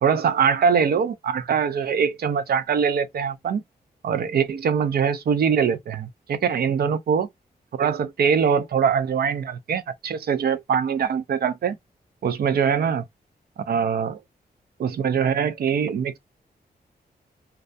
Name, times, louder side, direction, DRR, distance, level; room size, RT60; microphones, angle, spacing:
voice 1, 0.0-3.6 4.0-7.3 7.8-11.8 12.2-13.0 13.7-14.2 14.8-16.2, right 7 dB, 65° right, 0.4 m, -23 dB
2.3 x 2.1 x 2.6 m
wide cardioid pair, 115°, 17 cm